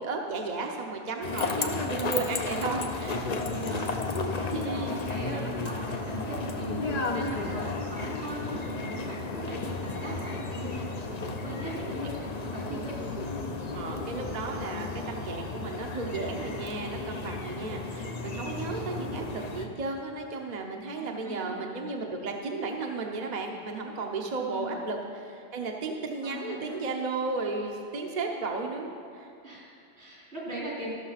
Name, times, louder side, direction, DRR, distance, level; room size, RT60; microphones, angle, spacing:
voice 1, 0.0-3.2 4.5-4.9 5.3-5.5 10.1-10.4 13.7-29.3, right 3 dB, 45° right, 1 dB, 0.9 m, -34 dB
sound 1, 1.2-19.7, left 3 dB, 45° left, 0.7 m, -33 dB
voice 2, 2.1-2.6 3.0-4.0 4.7-10.9 11.4-12.9 21.0-21.6 24.4-24.8 26.2-26.9 29.4-30.9, right 2 dB, 85° right, -5 dB, 3.4 m, -39 dB
14.0 x 6.3 x 5.7 m, 2.4 s
omnidirectional pair, 1.1 m